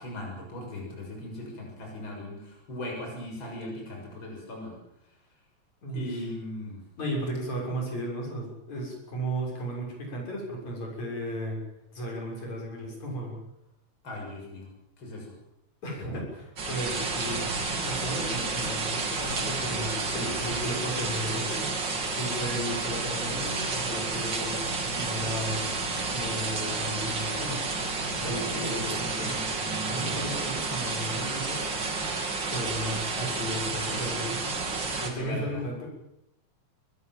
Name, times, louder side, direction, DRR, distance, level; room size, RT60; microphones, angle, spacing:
voice 1, 0.0-4.8 5.9-6.8 14.0-14.7 15.0-15.3 20.1-20.4 28.2-28.9 35.1-35.6, left 1 dB, 40° left, 0 dB, 7.4 m, -38 dB
voice 2, 5.8-6.2 7.0-11.6 11.9-13.4 15.8-25.6 26.1-27.7 28.1-29.6 29.9-31.6 32.5-35.9, equal, 70° left, -1 dB, 8.0 m, -35 dB
sound 1, 16.6-35.1, right 3 dB, 40° right, 3.3 m, -31 dB
23.0 x 20.5 x 7.5 m, 0.81 s
omnidirectional pair, 3.4 m